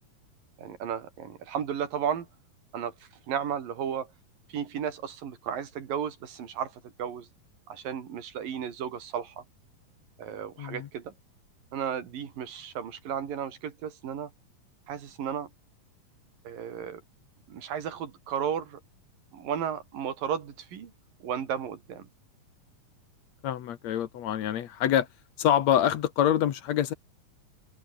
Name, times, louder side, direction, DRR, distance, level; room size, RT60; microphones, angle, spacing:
voice 1, 0.6-2.3 2.7-4.1 4.5-7.3 7.7-9.5 10.2-11.1 11.7-14.3 14.9-15.5 16.4-17.0 17.5-18.8 19.3-20.9 21.2-22.1, right 8 dB, 75° right, 4.4 m, -34 dB
voice 2, 10.6-10.9 23.4-25.1 25.4-26.9, left 10 dB, 60° left, 2.2 m, -25 dB
open air
omnidirectional pair, 4.0 m